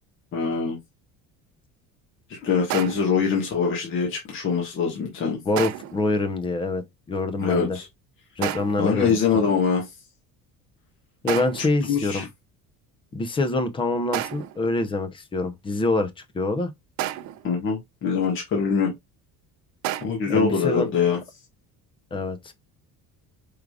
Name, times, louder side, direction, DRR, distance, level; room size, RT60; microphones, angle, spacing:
voice 1, 0.3-0.8 2.3-5.4 7.4-7.9 8.8-9.9 11.6-12.2 17.4-18.9 20.0-21.2, left 6 dB, 35° left, 1.4 m, -23 dB
sound 1, 2.7-3.2 5.6-6.1 8.4-8.9 11.3-11.8 14.1-14.6 17.0-17.5 19.8-20.1, right 14 dB, 55° right, 0.6 m, -31 dB
voice 2, 5.5-7.8 8.4-9.2 11.2-12.3 13.1-16.1 16.3-16.7 20.3-20.9 22.1-22.5, left 2 dB, 15° left, 0.5 m, -25 dB
4.8 x 3.6 x 2.3 m
cardioid pair, 170°, 35 cm